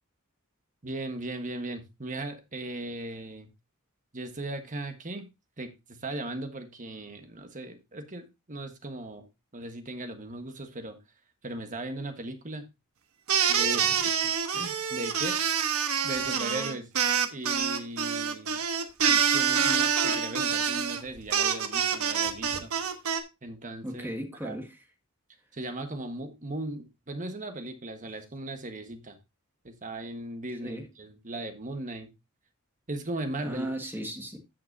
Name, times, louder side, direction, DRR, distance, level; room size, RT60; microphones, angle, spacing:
voice 1, 0.8-3.5 4.1-5.3 5.6-9.3 9.5-11.0 11.4-12.7 13.5-15.4 16.0-16.9 17.3-18.6 19.1-22.7 23.4-24.1 24.4-24.6 25.5-29.2 29.6-32.1 32.9-33.7, right 2 dB, 35° right, 1.4 m, -38 dB
sound 1, 13.3-23.2, right 7 dB, 75° right, 1.1 m, -26 dB
voice 2, 23.8-24.8 30.6-30.8 33.4-34.4, equal, 10° right, 1.6 m, -35 dB
13.5 x 5.9 x 2.7 m
head